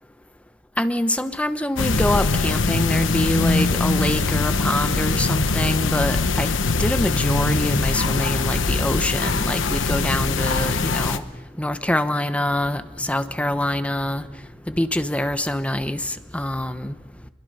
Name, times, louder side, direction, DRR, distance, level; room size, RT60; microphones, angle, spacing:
voice 1, 0.8-6.5 6.8-11.3 11.6-14.2 14.7-17.0, left 1 dB, 5° left, 10 dB, 0.9 m, -25 dB
sound 1, 1.8-11.2, left 3 dB, 85° left, 1.0 m, -22 dB
25.5 x 22.0 x 5.5 m, 1.1 s
head